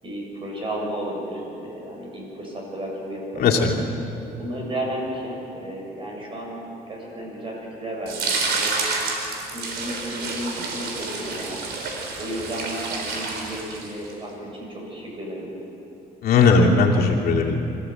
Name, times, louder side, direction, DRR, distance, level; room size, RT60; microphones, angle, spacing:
voice 1, 0.0-3.6 4.4-6.6 6.9-8.8 9.5-11.6 12.2-15.5, right 1 dB, 30° right, -2 dB, 7.2 m, -33 dB
voice 2, 3.4-3.7 16.2-17.6, left 4 dB, 65° left, -2 dB, 2.7 m, -17 dB
sound 1, 8.1-14.1, right 3 dB, 75° right, 4.2 m, -29 dB
25.5 x 15.0 x 7.9 m, 3.0 s
cardioid pair, 110°, 17 cm